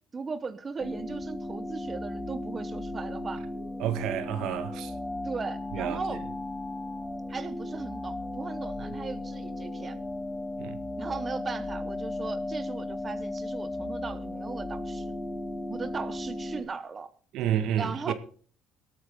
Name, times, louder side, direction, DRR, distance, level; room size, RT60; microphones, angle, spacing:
voice 1, 0.1-3.4 5.2-6.2 7.3-10.0 11.0-15.2 15.7-17.1 17.8-18.1, right 4 dB, 25° right, 1.0 m, -37 dB
sound 1, 0.8-16.6, left 1 dB, 15° left, 2.9 m, -36 dB
voice 2, 3.8-4.9 5.7-6.0 8.8-8.9 10.6-10.8 17.3-18.1, right 10 dB, 70° right, 1.9 m, -30 dB
22.0 x 8.9 x 3.8 m
cardioid pair, 110°, 0 cm